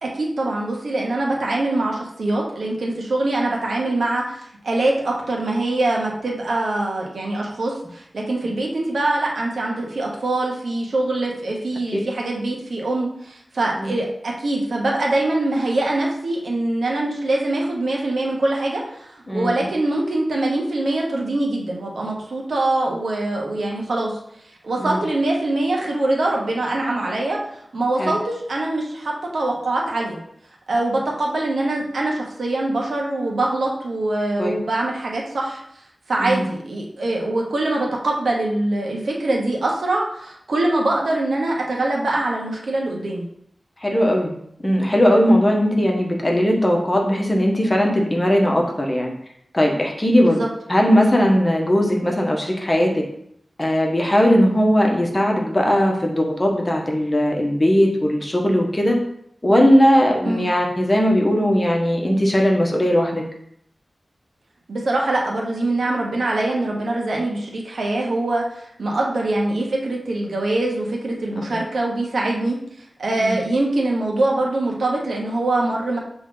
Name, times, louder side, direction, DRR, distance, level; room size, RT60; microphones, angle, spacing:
voice 1, 0.0-24.2 24.6-27.4 27.7-30.2 30.7-35.6 36.1-43.3 50.2-50.5 60.2-60.5 64.7-72.6 73.0-76.0, right 2 dB, 85° right, -2 dB, 1.2 m, -23 dB
voice 2, 19.3-19.6 24.8-25.0 28.0-28.1 34.4-34.5 36.2-36.5 43.8-49.1 49.5-50.4 50.7-53.0 53.6-59.0 59.4-63.2 73.2-73.4, equal, 25° left, 0 dB, 1.2 m, -18 dB
7.1 x 3.4 x 3.8 m, 0.71 s
wide cardioid pair, 85°, 0 cm